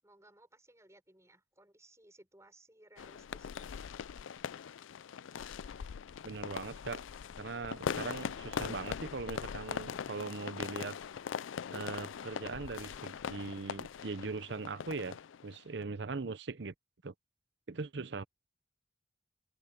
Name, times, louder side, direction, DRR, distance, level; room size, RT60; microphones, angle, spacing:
voice 1, 0.0-3.9, right 1 dB, 15° right, 6.1 m, -61 dB
sound 1, 3.0-15.8, left 7 dB, 90° left, 0.4 m, -41 dB
voice 2, 6.2-7.0 7.4-11.0 11.7-16.7 17.0-17.1 17.7-18.2, right 4 dB, 65° right, 0.7 m, -40 dB
head